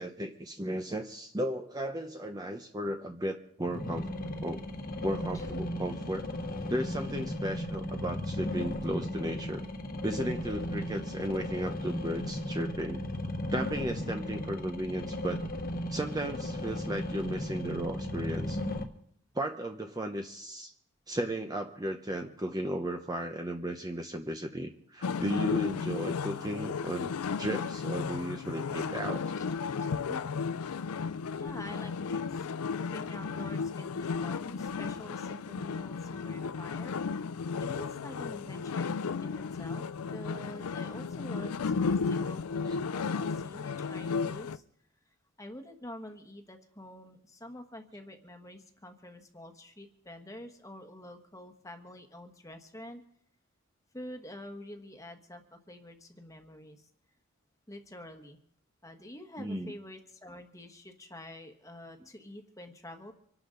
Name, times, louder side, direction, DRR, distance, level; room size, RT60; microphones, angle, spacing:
voice 1, 0.0-4.1 4.4-4.6 5.0-6.3 6.7-9.6 10.0-13.0 13.5-15.4 15.9-18.6 19.3-20.7 21.1-29.2 30.1-30.2 59.4-59.7, right 1 dB, 15° right, 5 dB, 0.8 m, -35 dB
sound 1, 3.6-18.8, left 1 dB, 40° left, 1.3 m, -36 dB
sound 2, 25.0-44.6, left 5 dB, 85° left, 0.5 m, -34 dB
voice 2, 29.4-30.0 31.4-37.0 37.6-38.9 39.2-44.6 45.4-53.0 53.9-56.9 57.7-58.4 58.8-63.1, left 1 dB, 15° left, 6 dB, 1.3 m, -47 dB
25.5 x 12.0 x 3.9 m, 0.68 s
head